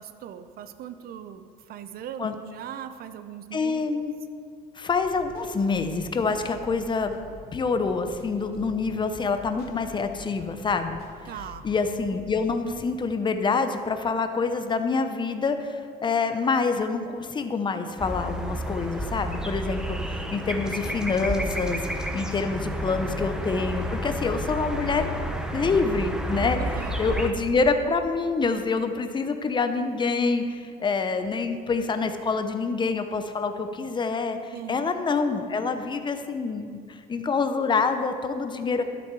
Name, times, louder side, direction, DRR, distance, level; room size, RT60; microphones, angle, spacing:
voice 1, 0.0-3.9 11.3-11.7 26.6-27.0 34.5-34.9, right 9 dB, 65° right, 11 dB, 0.6 m, -39 dB
voice 2, 3.5-4.1 4.7-7.1 7.5-11.0 11.6-25.0 25.5-26.6 27.0-38.8, left 4 dB, 25° left, 8 dB, 0.8 m, -26 dB
sound 1, 4.8-12.5, left 3 dB, 65° left, 2.2 m, -47 dB
sound 2, 18.0-27.3, equal, 5° right, 0.8 m, -31 dB
12.0 x 7.1 x 4.7 m, 2.2 s
cardioid pair, 110°, 17 cm